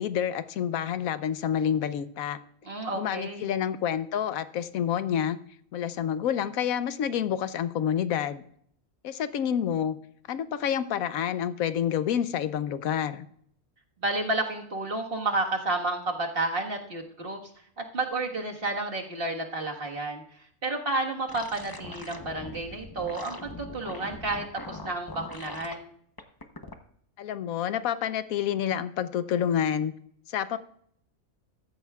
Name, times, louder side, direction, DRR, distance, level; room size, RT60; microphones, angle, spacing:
voice 1, 0.0-2.4 2.9-5.4 5.7-8.4 9.0-10.0 10.3-13.2 27.2-29.9 30.3-30.6, left 9 dB, 85° left, 13 dB, 1.1 m, -28 dB
voice 2, 2.6-3.5 14.0-17.4 17.8-20.2 20.6-25.9, right 2 dB, 45° right, 1 dB, 1.7 m, -31 dB
sound 1, 21.3-25.7 26.2-26.7, left 2 dB, 20° left, 0.7 m, -42 dB
14.5 x 13.0 x 2.3 m, 0.64 s
omnidirectional pair, 1.4 m